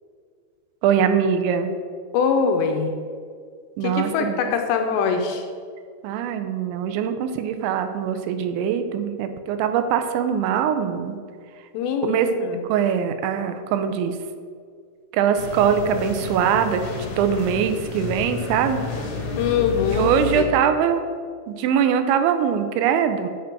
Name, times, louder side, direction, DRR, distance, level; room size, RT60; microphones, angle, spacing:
voice 1, 0.8-1.7 3.8-4.4 6.0-11.2 12.0-12.3 12.7-14.2 15.1-16.8 17.2-18.8 19.9-21.0 21.5-23.3, right 8 dB, 85° right, 8 dB, 2.9 m, -22 dB
voice 2, 2.1-3.0 3.8-5.5 11.7-12.6 19.3-20.5, left 6 dB, 80° left, 4 dB, 2.6 m, -23 dB
sound 1, 15.3-20.4, left 4 dB, 55° left, 2.2 m, -31 dB
7.3 x 5.9 x 5.9 m, 2.1 s
omnidirectional pair, 5.3 m